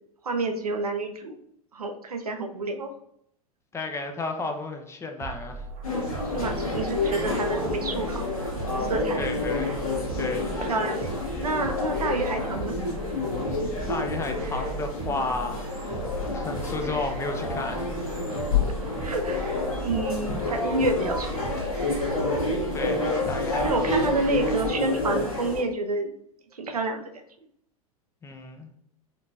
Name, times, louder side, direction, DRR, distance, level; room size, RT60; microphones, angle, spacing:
voice 1, 0.2-1.3 1.7-2.9 6.2-8.3 8.7-9.3 10.7-12.8 18.4-19.4 19.8-21.5 23.6-26.1 26.5-27.2, right 2 dB, 80° right, 5 dB, 0.6 m, -29 dB
voice 2, 3.7-5.7 9.2-9.8 10.1-10.5 13.9-15.9 16.3-17.9 22.7-24.1 28.2-28.7, left 3 dB, 15° left, 5 dB, 0.5 m, -33 dB
sound 1, 5.2-24.8, right 5 dB, 40° right, 0.6 m, -38 dB
sound 2, 5.8-25.6, left 3 dB, 65° left, 1.5 m, -29 dB
4.3 x 2.8 x 2.6 m, 0.70 s
figure-of-eight pair, 90°, 19 cm